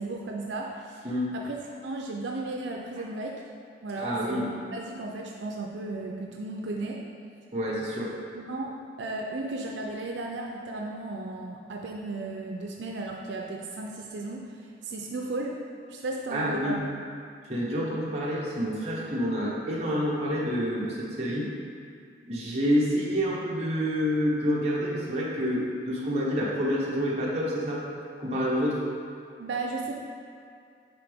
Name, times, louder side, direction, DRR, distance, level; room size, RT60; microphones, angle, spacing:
voice 1, 0.0-1.1 1.3-1.6 1.8-3.4 3.8-7.0 8.3-15.6 15.9-16.8 29.4-30.0, right 2 dB, 80° right, 0 dB, 0.5 m, -35 dB
voice 2, 4.0-4.5 7.5-8.2 16.3-16.8 17.5-21.5 22.2-27.8 28.2-28.8, equal, 35° right, -6 dB, 1.2 m, -28 dB
9.7 x 3.8 x 3.5 m, 2.4 s
head